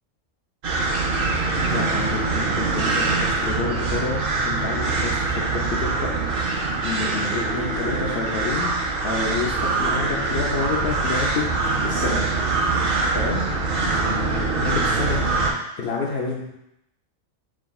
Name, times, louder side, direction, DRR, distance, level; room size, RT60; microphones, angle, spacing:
sound 1, 0.6-15.5, right 3 dB, 55° right, 0.7 m, -23 dB
voice 1, 1.5-6.1 6.8-8.8 9.0-11.5 11.8-12.2 13.1-13.5 14.6-15.4 15.8-16.5, left 4 dB, 65° left, -3 dB, 0.6 m, -29 dB
7.1 x 2.5 x 2.3 m, 0.82 s
omnidirectional pair, 1.4 m